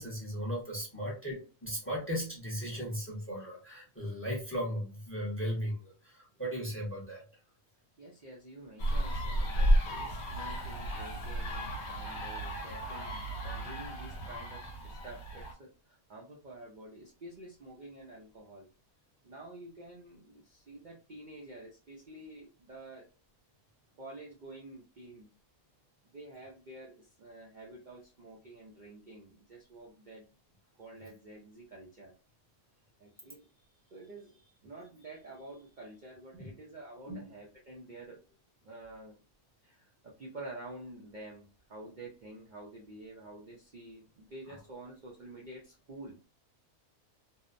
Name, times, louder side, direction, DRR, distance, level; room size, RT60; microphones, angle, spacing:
voice 1, 0.0-7.2 31.0-31.1 36.4-36.5 37.1-37.3 44.5-44.6, equal, 15° left, -2 dB, 0.5 m, -37 dB
voice 2, 8.0-18.7 19.2-23.1 24.0-25.3 26.1-30.3 30.8-32.1 33.0-33.5 33.9-38.2 38.6-39.2 39.6-39.8 40.0-41.4 41.7-46.1, right 2 dB, 75° right, -2 dB, 0.4 m, -49 dB
sound 1, 8.8-15.5, equal, 60° left, 0.9 m, -32 dB
2.7 x 2.0 x 2.4 m, 0.34 s
omnidirectional pair, 1.5 m